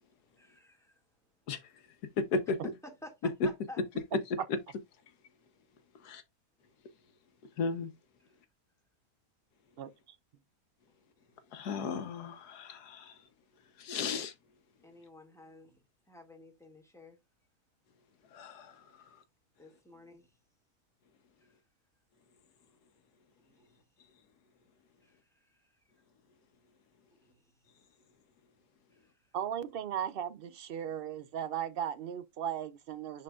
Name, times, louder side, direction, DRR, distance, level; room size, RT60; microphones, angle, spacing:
voice 1, 0.4-1.0 2.8-3.1 3.7-3.8 14.8-17.2 19.6-20.3 21.4-21.5 23.4-23.7 25.0-25.7 27.2-27.5, left 2 dB, ahead, 2.0 m, -53 dB
voice 2, 1.5-2.6 3.4-3.5 4.1-4.2 6.0-6.2 7.6-7.9 11.5-13.3 13.8-14.3 18.3-19.2, left 4 dB, 90° left, 1.5 m, -35 dB
voice 3, 9.8-10.2 29.3-33.2, right 9 dB, 80° right, 0.5 m, -37 dB
10.5 x 3.9 x 2.4 m
omnidirectional pair, 1.6 m